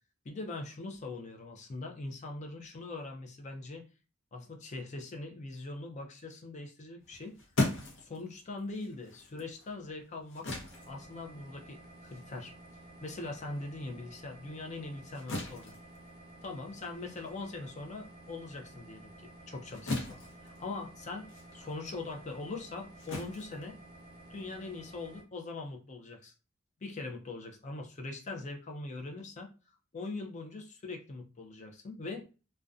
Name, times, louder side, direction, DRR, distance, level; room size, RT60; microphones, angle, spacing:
voice 1, 0.2-3.9 4.3-7.3 8.0-10.6 10.9-12.5 13.0-15.7 16.4-23.8 24.3-26.3 26.8-29.5 29.9-32.2, left 3 dB, 35° left, 2 dB, 0.4 m, -42 dB
sound 1, 7.0-13.8 14.2-24.4, left 1 dB, 65° left, 0.7 m, -40 dB
sound 2, 10.7-25.2, right 1 dB, 45° right, 0.7 m, -53 dB
2.5 x 2.1 x 2.3 m, 0.33 s
head